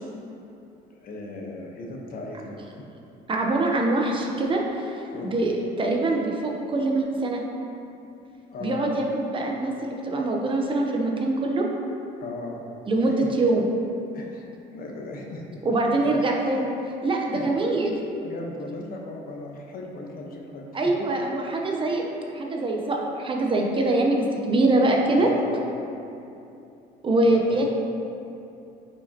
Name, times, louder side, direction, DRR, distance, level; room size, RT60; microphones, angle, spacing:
voice 1, 0.9-2.6 5.1-5.3 8.5-8.9 12.2-12.6 13.1-13.2 14.1-14.4 14.7-16.2 17.3-17.4 18.2-20.6 25.2-25.9 27.3-27.7, left 2 dB, 60° left, 0 dB, 1.1 m, -37 dB
voice 2, 3.3-7.4 8.6-11.7 12.9-13.7 15.6-16.7 17.0-17.9 20.7-22.0 22.3-25.3 27.0-27.7, right 2 dB, 30° right, 0 dB, 0.9 m, -24 dB
9.4 x 5.1 x 2.9 m, 2.7 s
cardioid pair, 110°, 17 cm